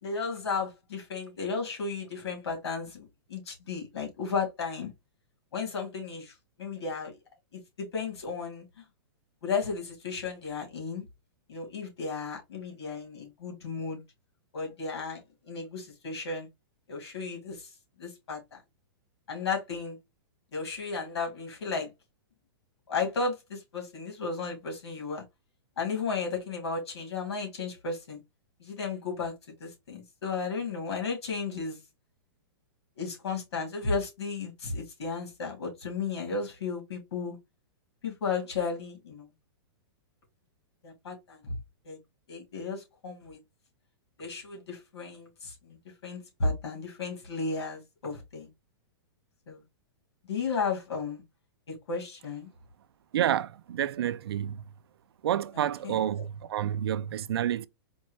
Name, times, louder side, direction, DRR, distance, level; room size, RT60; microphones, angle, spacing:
voice 1, 0.0-4.9 5.5-7.1 7.5-8.7 9.4-11.0 11.5-14.0 14.5-16.5 16.9-17.7 18.0-18.6 19.3-20.0 20.5-21.9 22.9-25.2 25.8-28.2 28.6-29.3 29.6-31.8 33.0-37.4 38.0-39.3 40.8-41.5 41.8-42.0 42.3-43.4 44.2-45.8 46.0-48.5 49.5-49.6 50.2-51.2 51.7-52.5 55.5-56.0, left 4 dB, 85° left, 2.6 m, -34 dB
voice 2, 53.1-54.6 55.2-57.7, right 11 dB, 70° right, 0.4 m, -29 dB
4.4 x 2.7 x 3.1 m
hypercardioid pair, 170°, 13 cm